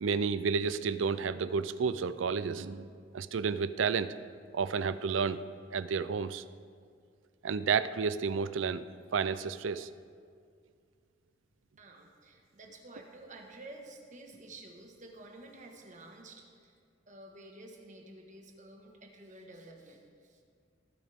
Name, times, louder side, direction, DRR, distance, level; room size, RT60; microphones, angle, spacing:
voice 1, 0.0-4.1 4.5-5.4 5.7-6.4 7.4-8.8 9.1-9.9, right 5 dB, 80° right, 15 dB, 0.4 m, -31 dB
voice 2, 11.8-16.8 17.1-20.4, right 2 dB, 40° right, 2 dB, 1.4 m, -51 dB
19.0 x 9.4 x 3.6 m, 2.2 s
head